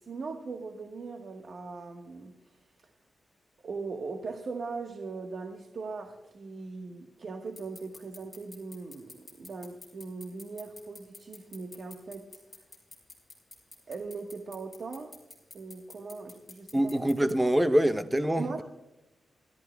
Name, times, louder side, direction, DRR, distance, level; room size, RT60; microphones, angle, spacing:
voice 1, 0.0-2.3 3.6-12.4 13.9-15.2 15.5-17.1 18.4-18.6, right 4 dB, 60° right, 1.4 m, -40 dB
sound 1, 7.6-17.3, left 3 dB, 20° left, 4.4 m, -47 dB
voice 2, 16.7-18.6, right 1 dB, 10° right, 0.8 m, -25 dB
28.5 x 13.0 x 2.3 m
cardioid pair, 85°, 0 cm